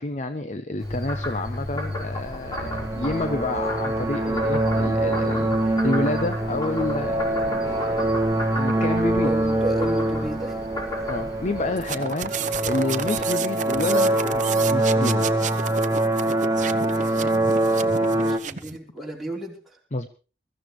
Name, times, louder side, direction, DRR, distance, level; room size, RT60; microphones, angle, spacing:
voice 1, 0.0-8.1 8.5-9.3 11.1-15.5 19.9-20.1, left 2 dB, 40° left, 9 dB, 0.8 m, -29 dB
Frog, 0.8-11.9, left 1 dB, 20° left, 4.2 m, -34 dB
sound 1, 1.8-18.4, right 1 dB, 20° right, 1.3 m, -24 dB
voice 2, 9.2-10.6 16.9-17.5 18.2-19.8, right 1 dB, ahead, -3 dB, 4.0 m, -34 dB
sound 2, 11.8-18.8, right 7 dB, 45° right, 0.8 m, -32 dB
22.0 x 14.5 x 3.2 m, 0.35 s
head